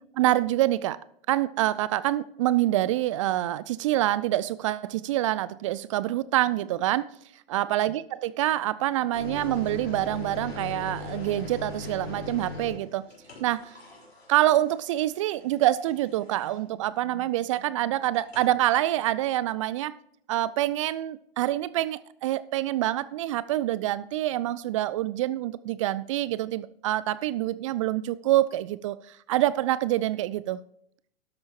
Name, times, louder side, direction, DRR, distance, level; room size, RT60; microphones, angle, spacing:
voice 1, 0.1-1.0 1.3-7.1 7.5-13.1 13.4-13.8 14.3-20.0 20.3-30.6, right 14 dB, 35° right, 0.4 m, -26 dB
sound 1, 9.1-16.8 18.1-18.5, left 2 dB, 80° left, 4.1 m, -40 dB
12.5 x 12.0 x 2.9 m
figure-of-eight pair, 105°, 30 cm